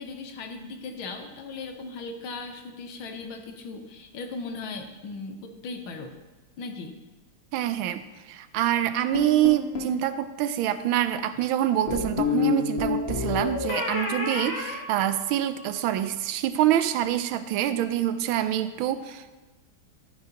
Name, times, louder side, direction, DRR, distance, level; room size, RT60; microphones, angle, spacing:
voice 1, 0.0-6.1 6.6-7.0, left 3 dB, 75° left, 5 dB, 1.8 m, -38 dB
voice 2, 7.5-19.4, right 12 dB, 80° right, 11 dB, 1.4 m, -26 dB
sound 1, 9.1-10.0 11.9-15.6, left 4 dB, 35° left, 1.5 m, -29 dB
13.0 x 9.1 x 2.9 m, 1.2 s
omnidirectional pair, 2.2 m